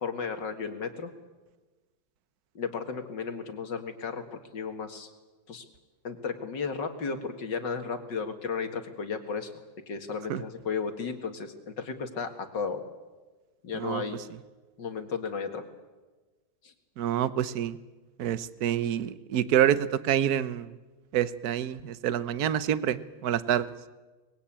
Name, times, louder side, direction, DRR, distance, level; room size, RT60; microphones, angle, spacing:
voice 1, 0.0-1.1 2.5-5.1 5.5-5.6 6.0-9.5 9.9-12.8 13.6-14.2 14.8-15.6 16.6-16.7, left 5 dB, 60° left, 6 dB, 2.5 m, -34 dB
voice 2, 17.0-17.8 18.2-20.7 21.1-23.7, right 10 dB, 55° right, 15 dB, 1.2 m, -27 dB
24.5 x 21.0 x 8.7 m, 1.2 s
omnidirectional pair, 2.3 m